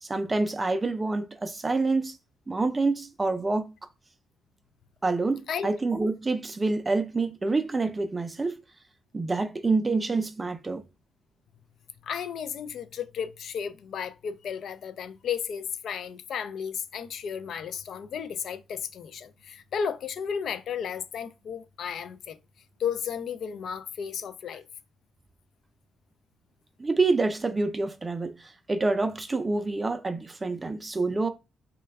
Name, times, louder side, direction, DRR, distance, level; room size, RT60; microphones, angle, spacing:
voice 1, 0.0-2.2 2.5-3.7 5.0-8.6 9.1-10.8 26.8-31.3, right 3 dB, 20° right, 0.4 m, -27 dB
voice 2, 12.0-22.4 22.8-24.6, left 7 dB, 65° left, 0.4 m, -33 dB
3.1 x 2.2 x 3.3 m
cardioid pair, 90°, 0 cm